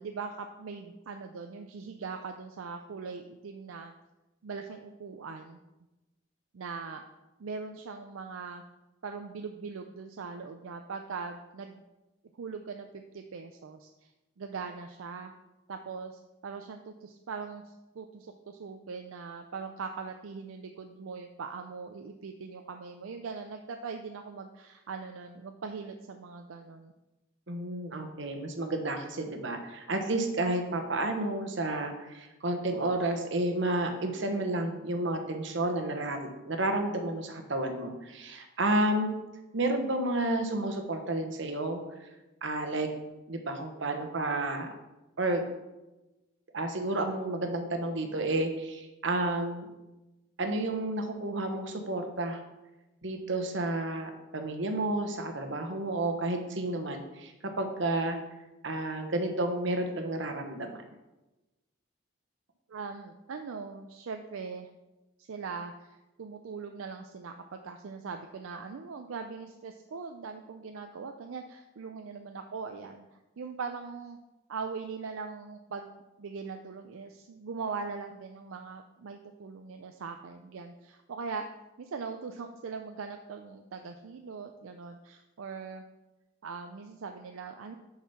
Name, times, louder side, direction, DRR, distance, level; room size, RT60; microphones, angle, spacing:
voice 1, 0.0-3.9 4.4-5.6 6.5-7.1 7.4-8.6 9.0-11.8 12.3-14.1 14.4-15.3 15.7-26.9 62.7-64.7 65.2-73.1 73.4-74.2 74.5-81.5 81.8-85.8 86.4-87.8, right 5 dB, 80° right, 5 dB, 0.5 m, -41 dB
voice 2, 27.5-39.1 39.5-42.1 42.4-42.9 43.3-44.7 45.2-45.4 46.5-49.7 50.4-52.4 53.0-58.2 58.6-60.8, right 2 dB, 60° right, 5 dB, 1.0 m, -31 dB
6.8 x 4.8 x 5.6 m, 1.0 s
head